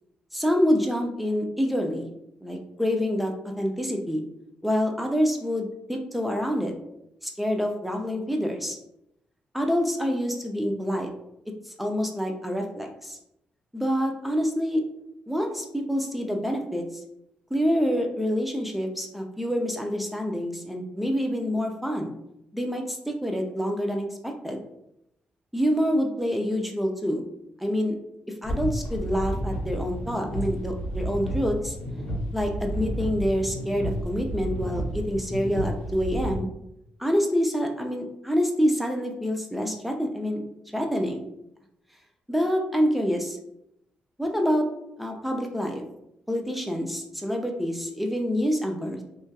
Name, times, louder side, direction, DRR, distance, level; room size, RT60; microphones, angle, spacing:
voice 1, 0.3-2.1 2.4-4.2 4.6-6.7 7.2-8.8 9.5-11.1 11.7-13.2 13.7-14.8 15.3-16.9 17.5-22.1 22.5-24.6 25.5-27.3 27.6-27.9 28.4-31.8 32.3-36.5 37.0-40.4 40.7-41.2 42.3-43.4 44.2-44.7 45.0-45.8 46.3-49.0, equal, 5° right, 2 dB, 0.4 m, -27 dB
sound 1, 28.4-36.4, right 1 dB, 80° left, 0.8 m, -31 dB
2.7 x 2.3 x 2.2 m, 0.80 s
cardioid pair, 75°, 3 cm